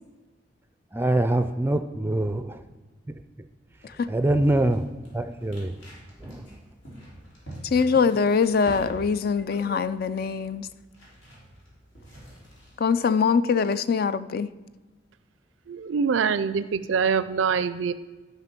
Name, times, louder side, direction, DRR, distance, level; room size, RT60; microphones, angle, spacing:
voice 1, 0.9-2.6 4.1-4.8 5.1-5.7 6.2-6.5 9.7-9.8, right 1 dB, 10° right, 10 dB, 0.4 m, -24 dB
sound 1, 3.7-12.8, equal, 85° left, 3.9 m, -45 dB
voice 2, 7.6-10.7 12.8-14.5, left 5 dB, 55° left, 15 dB, 0.4 m, -23 dB
voice 3, 15.7-17.9, right 6 dB, 90° right, 14 dB, 0.4 m, -24 dB
11.0 x 5.8 x 5.9 m, 1.2 s
head